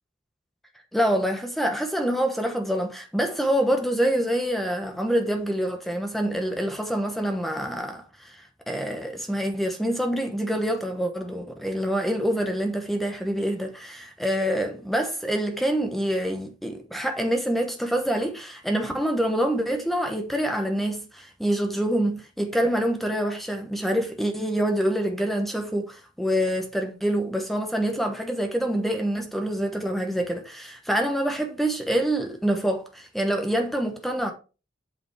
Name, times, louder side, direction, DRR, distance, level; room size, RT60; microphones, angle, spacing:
voice 1, 0.9-34.3, right 1 dB, ahead, 1.0 m, -26 dB
8.5 x 5.0 x 4.8 m
head